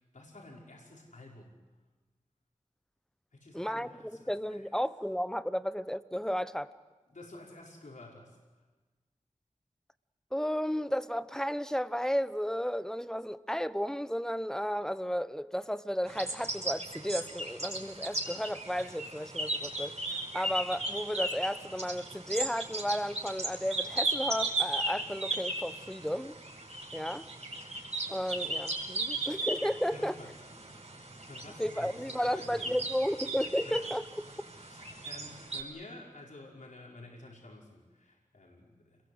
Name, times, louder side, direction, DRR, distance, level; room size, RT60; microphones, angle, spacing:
voice 1, 0.1-1.6 3.3-4.8 7.1-8.4 29.9-30.7 31.3-32.7 33.6-33.9 34.6-39.0, left 2 dB, 75° left, 5.5 m, -50 dB
voice 2, 3.5-3.9 4.2-6.7 10.3-19.9 20.3-26.4 26.9-27.2 28.1-30.2 31.6-34.0, equal, 5° left, 0.9 m, -33 dB
sound 1, 16.1-35.6, right 2 dB, 55° right, 5.3 m, -37 dB
29.5 x 22.0 x 8.1 m
wide cardioid pair, 65°, 13 cm